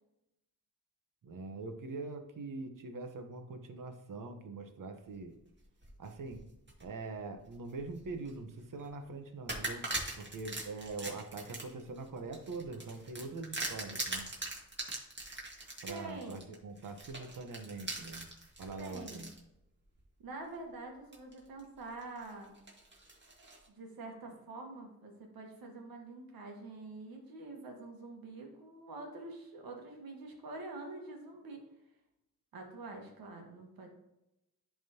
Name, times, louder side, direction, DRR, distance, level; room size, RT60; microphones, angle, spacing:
voice 1, 1.2-5.3 6.0-6.4 6.8-9.8 10.2-14.3 15.8-18.3 18.6-19.3, right 3 dB, 65° right, 6 dB, 1.0 m, -43 dB
sound 1, 5.6-6.9 7.4-8.3 8.8-8.9 9.5-19.4 20.0-20.1 21.1-21.6 22.0-23.7, right 2 dB, 30° right, 1.8 m, -42 dB
voice 2, 15.9-16.4 18.8-19.2 20.2-22.5 23.7-31.6 32.5-33.9, right 2 dB, 90° right, 2 dB, 1.4 m, -46 dB
10.5 x 3.6 x 2.8 m, 0.89 s
cardioid pair, 60°, 35 cm